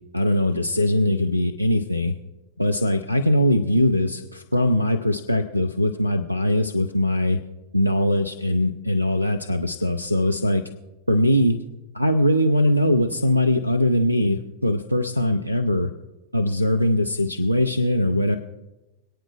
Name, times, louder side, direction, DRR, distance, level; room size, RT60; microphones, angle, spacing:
voice 1, 0.1-2.1 2.6-7.4 7.7-10.6 11.1-11.6 11.9-15.9 16.3-18.4, left 1 dB, 90° right, 10 dB, 0.6 m, -21 dB
26.5 x 9.1 x 2.4 m, 1.0 s
figure-of-eight pair, 90°, 0 cm